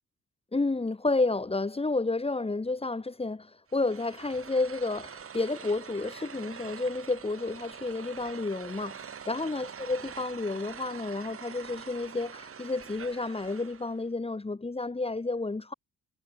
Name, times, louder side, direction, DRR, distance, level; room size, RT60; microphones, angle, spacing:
voice 1, 0.5-9.0 9.3-15.7, left 3 dB, 20° left, 3.5 m, -31 dB
sound 1, 3.7-14.0, right 7 dB, 45° right, 6.0 m, -45 dB
cardioid pair, 90°, 30 cm